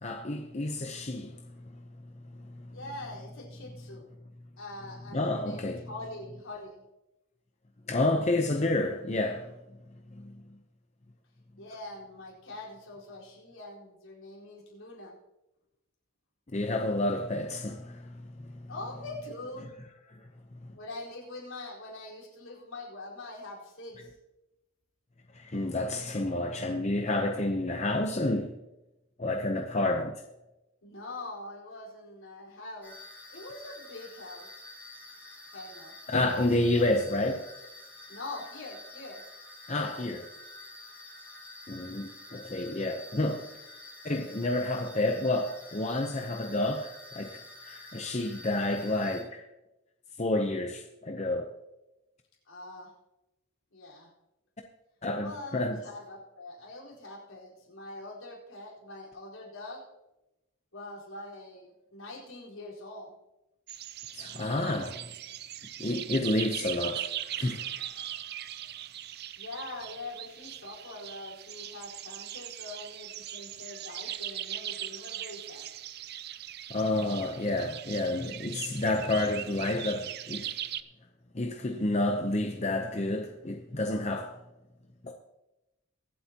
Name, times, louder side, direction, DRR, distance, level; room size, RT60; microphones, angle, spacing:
voice 1, 0.0-2.8 5.1-5.9 7.9-9.5 10.1-10.4 16.5-18.7 20.2-20.3 20.6-20.7 25.3-28.6 29.2-30.1 36.1-37.4 39.7-40.3 41.7-43.4 44.0-49.4 50.2-51.5 55.0-55.8 64.1-65.1 65.8-67.1 67.4-67.7 76.7-80.5 81.3-84.4 85.0-85.1, left 2 dB, 30° left, 0.7 m, -30 dB
voice 2, 2.7-4.1 4.6-6.8 11.6-15.1 18.7-19.7 20.7-24.1 30.8-33.0 33.3-34.6 35.5-35.9 38.1-39.2 52.5-52.9 53.7-54.1 55.2-59.8 60.7-63.1 69.4-75.7, left 2 dB, 70° left, 4.3 m, -43 dB
sound 1, 32.8-49.2, left 2 dB, 10° left, 4.3 m, -48 dB
sound 2, 63.7-80.8, right 11 dB, 45° right, 0.4 m, -40 dB
23.5 x 8.0 x 2.9 m
head